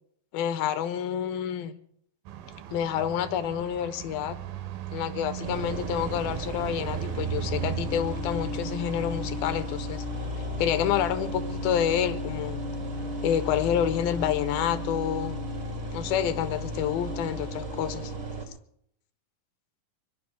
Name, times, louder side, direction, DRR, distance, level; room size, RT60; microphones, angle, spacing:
voice 1, 0.3-1.7 2.7-4.4 4.9-10.0 10.6-12.6 13.2-15.4 15.9-18.1, left 10 dB, 85° left, 12 dB, 2.7 m, -28 dB
sound 1, 2.3-15.0, right 11 dB, 85° right, 2.8 m, -39 dB
sound 2, 5.4-18.4, left 1 dB, 25° right, 2.1 m, -34 dB
26.5 x 23.0 x 2.2 m, 0.70 s
omnidirectional pair, 4.1 m